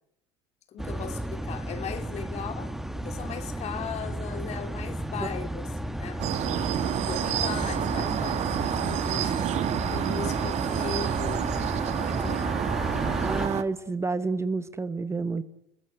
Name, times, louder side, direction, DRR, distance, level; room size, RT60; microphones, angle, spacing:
voice 1, 0.7-6.2 7.0-12.6, left 7 dB, 50° left, 3.1 m, -38 dB
sound 1, 0.8-13.5, right 1 dB, ahead, 1.9 m, -33 dB
sound 2, 6.2-13.6, right 11 dB, 50° right, 1.5 m, -29 dB
sound 3, 6.2-12.4, right 10 dB, 80° right, 4.3 m, -38 dB
voice 2, 13.2-15.4, right 3 dB, 20° right, 1.3 m, -29 dB
29.5 x 21.0 x 8.2 m
hypercardioid pair, 80°, 15 cm